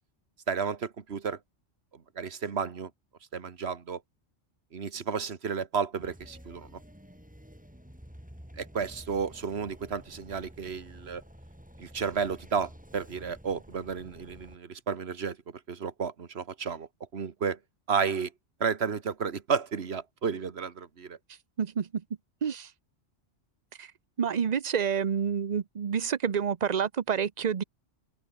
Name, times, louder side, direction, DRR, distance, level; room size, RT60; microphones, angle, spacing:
voice 1, 0.5-1.4 1.9-2.9 3.3-4.0 4.7-6.7 8.6-11.2 11.8-15.4 15.7-17.6 17.9-18.3 18.6-21.2, right 6 dB, 60° right, 1.7 m, -32 dB
sound 1, 6.0-14.6, equal, 5° right, 5.0 m, -50 dB
voice 2, 21.6-22.0 22.4-22.7 23.8-23.9 24.2-27.6, right 7 dB, 40° right, 0.8 m, -28 dB
open air
omnidirectional pair, 1.2 m